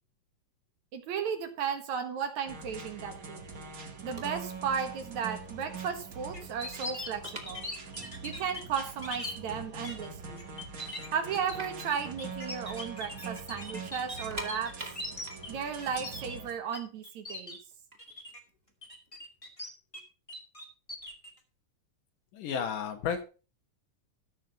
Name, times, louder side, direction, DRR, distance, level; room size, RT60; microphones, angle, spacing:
voice 1, 0.9-3.5 4.0-7.6 8.2-10.4 11.1-14.7 15.5-17.6, right 7 dB, 65° right, 7 dB, 2.7 m, -35 dB
sound 1, 2.5-16.5, right 4 dB, 45° right, 1.2 m, -44 dB
sound 2, 4.1-4.6 4.8-5.1 5.6-5.7 5.9-8.2 8.5-8.6 9.2-9.3 9.7-10.4 10.7-10.8 11.1-13.1 13.4-13.5 14.1-17.0 17.7-19.4, right 1 dB, 20° right, 2.1 m, -45 dB
sound 3, 6.3-9.3 9.8-10.1 10.4-16.8 17.0-17.6 18.0-18.4 18.8-20.0 20.3-21.3, left 1 dB, 15° left, 1.5 m, -41 dB
voice 2, 22.3-23.2, left 7 dB, 80° left, 6 dB, 3.1 m, -32 dB
13.5 x 6.2 x 5.2 m, 0.34 s
omnidirectional pair, 3.7 m